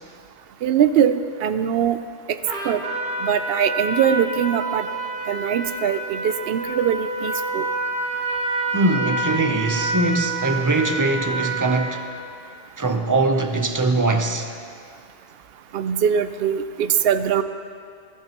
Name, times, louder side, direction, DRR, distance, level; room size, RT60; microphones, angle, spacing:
voice 1, 0.6-2.0 2.6-2.8 3.2-4.9 5.3-7.6 15.7-17.4, right 8 dB, 65° right, 0.7 m, -21 dB
Trumpet, 2.5-12.0, right 2 dB, 45° right, 1.3 m, -28 dB
voice 2, 8.7-12.0 12.8-14.5, right 2 dB, 20° right, 0.5 m, -21 dB
19.5 x 11.0 x 2.9 m
omnidirectional pair, 1.2 m